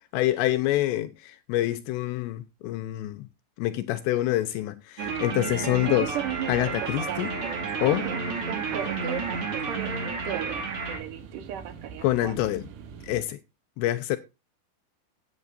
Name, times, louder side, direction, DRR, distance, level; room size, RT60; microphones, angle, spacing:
voice 1, 0.1-3.2 3.6-6.2 6.5-7.4 7.8-8.1 12.0-12.7 13.1-13.4 13.8-14.2, left 15 dB, 80° left, 2.8 m, -26 dB
sound 1, 5.0-11.0, right 4 dB, 40° right, 2.5 m, -32 dB
sound 2, 5.0-13.2, right 10 dB, 65° right, 2.2 m, -37 dB
voice 2, 5.4-5.9 7.9-8.2 8.7-9.3 9.6-10.6, right 8 dB, 85° right, 4.2 m, -37 dB
16.5 x 8.7 x 2.6 m
omnidirectional pair, 5.2 m